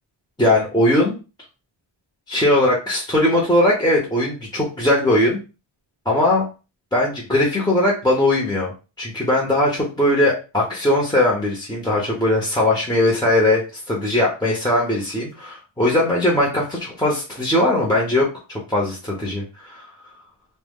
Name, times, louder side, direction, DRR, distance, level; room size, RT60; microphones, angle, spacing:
voice 1, 0.4-1.2 2.3-5.4 6.1-6.4 6.9-8.7 9.0-13.6 13.9-19.9, left 1 dB, 10° left, -4 dB, 0.7 m, -19 dB
2.1 x 2.1 x 3.6 m, 0.31 s
wide cardioid pair, 80°, 48 cm